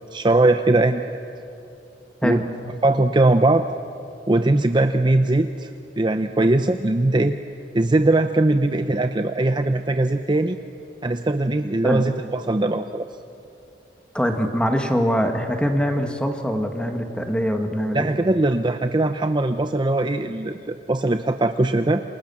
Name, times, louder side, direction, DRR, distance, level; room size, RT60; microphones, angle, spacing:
voice 1, 0.1-1.0 2.2-2.4 2.8-3.6 4.3-5.7 6.0-7.3 7.7-10.6 11.0-13.1 17.9-22.0, right 2 dB, 25° right, 8 dB, 0.6 m, -20 dB
voice 2, 14.1-18.1, equal, 5° left, 4 dB, 2.0 m, -23 dB
28.0 x 26.5 x 7.2 m, 2.7 s
head